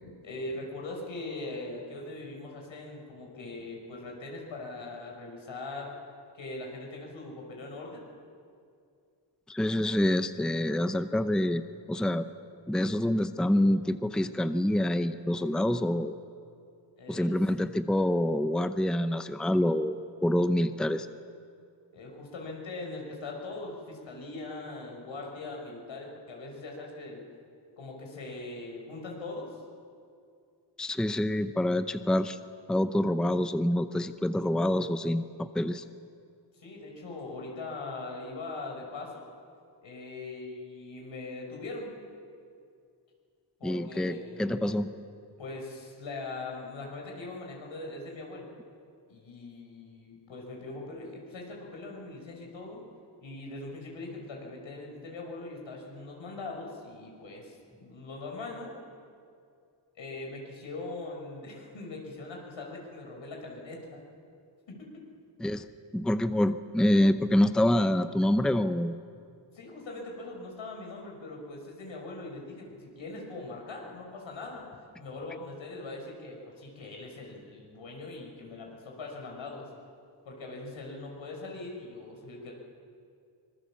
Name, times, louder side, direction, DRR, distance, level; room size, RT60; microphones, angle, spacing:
voice 1, 0.0-5.9 6.4-8.1 17.0-17.3 21.9-27.2 27.8-29.5 36.5-39.3 39.8-42.0 43.6-44.8 45.4-48.5 49.1-52.8 53.2-58.8 60.0-64.0 64.7-64.9 69.5-74.7 75.0-79.7 80.2-82.5, left 2 dB, 85° left, 0 dB, 5.6 m, -41 dB
voice 2, 9.5-11.6 11.9-12.3 12.7-16.2 17.1-21.1 30.8-32.4 32.7-35.8 43.6-44.9 65.4-68.9, left 1 dB, ahead, 10 dB, 0.7 m, -26 dB
25.0 x 21.5 x 7.3 m, 2.4 s
wide cardioid pair, 100°, 45 cm